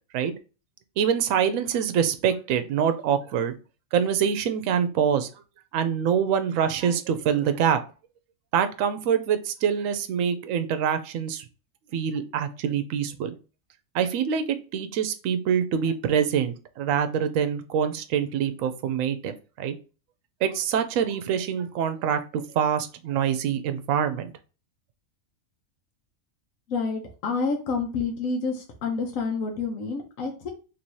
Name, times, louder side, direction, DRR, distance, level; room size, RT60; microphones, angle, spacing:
voice 1, 1.0-3.6 3.9-5.3 5.7-7.8 8.5-11.5 11.9-13.3 13.9-14.4 14.7-19.7 20.4-24.3, right 8 dB, 75° right, 10 dB, 0.9 m, -25 dB
voice 2, 26.7-30.5, left 4 dB, 75° left, 2 dB, 1.2 m, -28 dB
3.1 x 2.7 x 4.5 m, 0.34 s
omnidirectional pair, 1.4 m